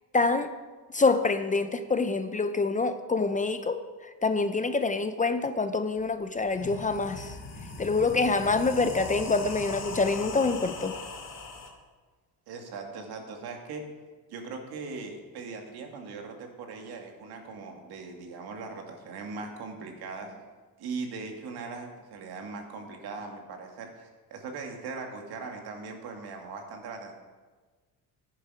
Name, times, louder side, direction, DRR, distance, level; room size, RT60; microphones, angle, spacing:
voice 1, 0.1-0.5 0.9-3.8 4.2-7.3 7.8-10.9, left 3 dB, 20° left, 9 dB, 0.6 m, -26 dB
sound 1, 6.0-6.1 6.4-11.7, left 3 dB, 40° left, 2.6 m, -39 dB
voice 2, 12.5-13.8 14.3-20.3 20.8-27.1, right 4 dB, 70° right, 3 dB, 2.2 m, -40 dB
10.5 x 10.0 x 5.0 m, 1.4 s
cardioid pair, 100°, 39 cm